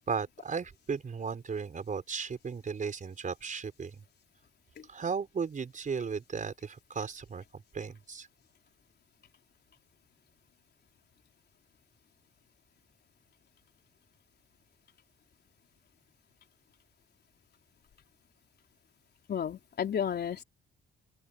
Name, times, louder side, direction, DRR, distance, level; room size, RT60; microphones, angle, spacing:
voice 1, 0.1-4.0 4.9-8.3, right 5 dB, 40° right, 4.9 m, -35 dB
voice 2, 19.3-20.4, left 8 dB, 55° left, 3.9 m, -32 dB
open air
cardioid pair, 90°, 20 cm